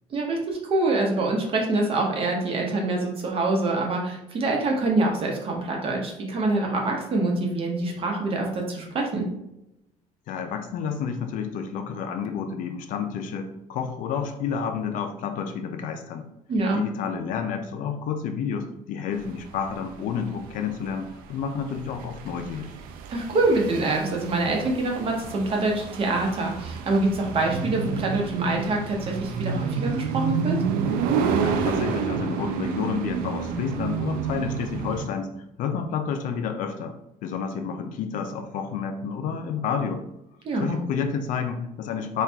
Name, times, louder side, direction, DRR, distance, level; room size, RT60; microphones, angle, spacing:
voice 1, 0.1-9.3 16.5-16.8 23.1-30.6 40.4-40.8, right 2 dB, 40° right, 0 dB, 1.0 m, -25 dB
voice 2, 10.3-16.3 16.7-22.7 31.4-35.3 35.6-36.9 37.2-40.0 40.6-42.2, left 6 dB, 65° left, 6 dB, 0.5 m, -30 dB
sound 1, 19.2-35.1, right 6 dB, 75° right, 0.4 m, -30 dB
4.3 x 2.4 x 3.4 m, 0.88 s
cardioid pair, 140°, 15 cm